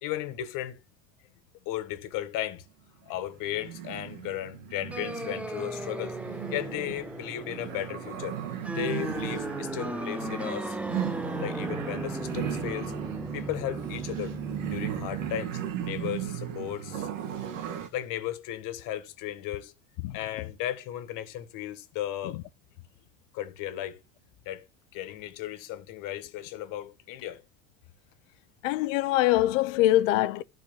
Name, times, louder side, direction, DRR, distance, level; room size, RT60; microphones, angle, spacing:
voice 1, 0.0-0.8 1.6-2.6 3.0-6.2 6.5-8.4 8.7-10.8 11.4-12.9 13.3-14.4 14.6-17.1 17.9-19.7 20.1-22.4 23.3-24.0 24.4-24.6 24.9-27.4, left 12 dB, 55° left, 1.6 m, -35 dB
sound 1, 3.2-17.9, right 10 dB, 90° right, 1.7 m, -37 dB
sound 2, 4.9-15.4, right 1 dB, 5° right, 0.4 m, -37 dB
voice 2, 28.6-30.4, left 15 dB, 75° left, 0.8 m, -23 dB
12.0 x 4.5 x 6.9 m
supercardioid pair, 115°, 38 cm